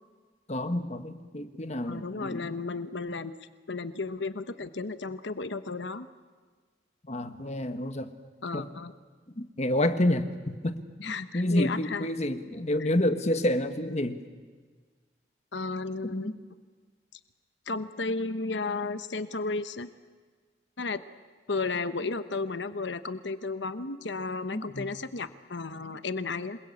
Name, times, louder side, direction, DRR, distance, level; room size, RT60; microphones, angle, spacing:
voice 1, 0.5-2.6 7.1-8.1 8.5-8.7 9.4-10.8 11.3-14.2 16.0-16.3 24.5-24.9, left 1 dB, 40° left, 9 dB, 1.5 m, -29 dB
voice 2, 1.9-3.3 3.7-6.1 8.4-8.9 11.0-12.1 12.8-12.9 15.5-16.3 17.7-19.9 20.8-21.0 21.5-26.6, left 3 dB, 80° left, 12 dB, 1.1 m, -33 dB
28.0 x 21.5 x 8.5 m, 1.5 s
head